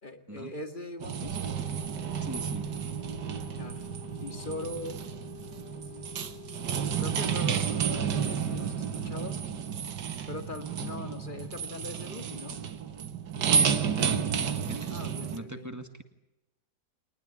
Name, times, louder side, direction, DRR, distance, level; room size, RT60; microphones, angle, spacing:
voice 1, 0.0-1.4 3.6-3.8 4.2-5.0 6.9-9.4 10.3-12.6 14.9-15.8, left 2 dB, 30° left, 8 dB, 2.0 m, -40 dB
sound 1, 1.0-15.4, right 7 dB, 75° right, 1.9 m, -31 dB
sound 2, 1.2-8.4, left 8 dB, 45° left, 3.9 m, -48 dB
voice 2, 2.2-2.7 13.5-14.9 15.3-16.0, right 1 dB, 10° right, 8 dB, 1.8 m, -41 dB
23.5 x 20.0 x 9.9 m, 0.94 s
omnidirectional pair, 1.8 m